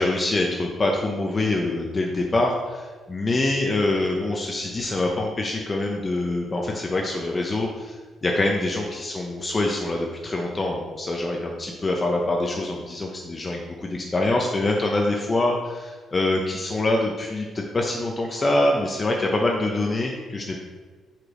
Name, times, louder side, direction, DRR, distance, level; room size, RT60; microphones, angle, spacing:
voice 1, 0.0-20.6, left 2 dB, 25° left, 0 dB, 0.7 m, -25 dB
5.0 x 4.4 x 4.8 m, 1.4 s
cardioid pair, 95°, 0 cm